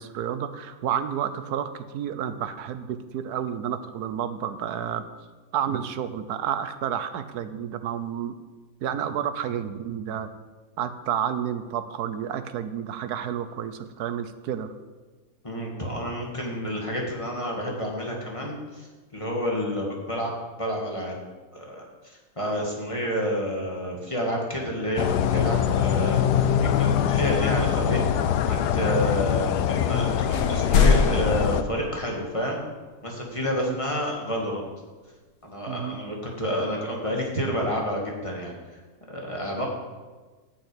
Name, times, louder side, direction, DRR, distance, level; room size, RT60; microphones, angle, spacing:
voice 1, 0.0-5.1 5.5-8.4 8.8-10.3 10.8-14.7 33.4-33.7 35.7-36.0, right 9 dB, 75° right, 10 dB, 1.3 m, -30 dB
voice 2, 15.4-20.3 20.6-21.2 21.5-28.0 28.4-32.6 33.0-34.7 35.4-38.5 39.1-39.7, equal, 20° left, -1 dB, 1.9 m, -29 dB
sound 1, 24.9-31.6, left 9 dB, 85° left, 1.2 m, -23 dB
sound 2, 29.9-30.0 30.3-32.4, left 5 dB, 70° left, 1.4 m, -23 dB
9.9 x 6.3 x 8.4 m, 1.3 s
omnidirectional pair, 1.7 m